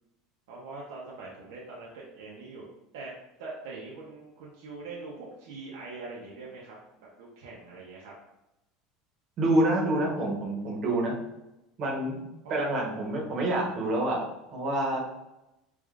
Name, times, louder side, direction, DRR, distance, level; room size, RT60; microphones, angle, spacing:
voice 1, 0.5-2.7 2.9-3.1 3.4-8.1 12.4-12.6, right 3 dB, 90° right, -5 dB, 0.7 m, -43 dB
voice 2, 9.4-11.1 11.8-12.2 12.5-15.0, right 1 dB, 35° right, -2 dB, 0.9 m, -27 dB
4.7 x 2.4 x 2.4 m, 0.93 s
cardioid pair, 165°, 0 cm